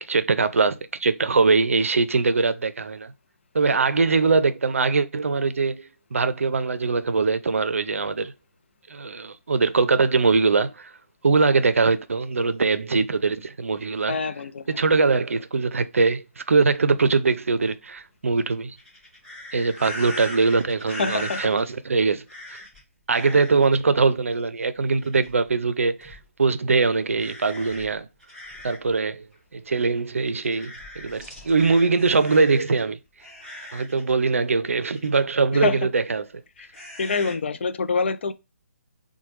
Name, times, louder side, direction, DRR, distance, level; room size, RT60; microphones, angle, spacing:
voice 1, 0.1-3.1 3.5-8.3 8.9-10.9 11.2-14.2 14.7-18.8 19.5-22.6 23.1-28.1 28.6-29.3 29.5-33.0 33.7-36.2, right 4 dB, 65° right, 0.5 m, -22 dB
voice 2, 14.1-14.9 21.0-21.4 35.5-35.8 36.6-38.3, left 4 dB, 50° left, 0.5 m, -26 dB
sound 1, 18.8-21.7 22.3-22.8 23.1-23.8 25.0-25.5 26.0-26.2 27.2-28.9 29.3-29.4 30.3-32.8 33.2-34.1 34.9-35.2 36.7-37.3, left 1 dB, 5° left, 2.2 m, -39 dB
5.9 x 2.2 x 3.1 m
figure-of-eight pair, 140°, 8 cm